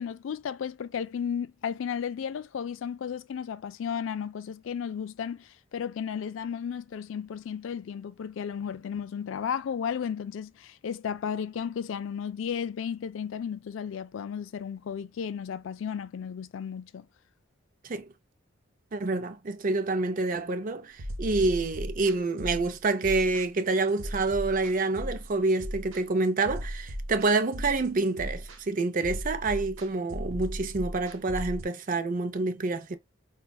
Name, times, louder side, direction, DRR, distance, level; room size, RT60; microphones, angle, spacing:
voice 1, 0.0-17.1, left 7 dB, 70° left, 0.3 m, -34 dB
voice 2, 18.9-33.0, right 3 dB, 40° right, 0.5 m, -27 dB
sound 1, 21.0-31.6, equal, 75° right, 0.8 m, -37 dB
5.1 x 2.3 x 2.3 m
head